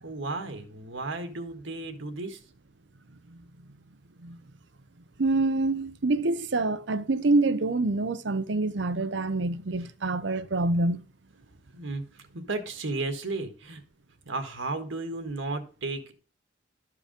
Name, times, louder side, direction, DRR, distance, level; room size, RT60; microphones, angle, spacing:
voice 1, 0.0-2.4 11.7-13.8 14.3-16.1, right 3 dB, 90° right, 1.7 m, -34 dB
voice 2, 5.2-11.1, right 2 dB, 65° right, 0.7 m, -26 dB
12.5 x 4.8 x 5.1 m
head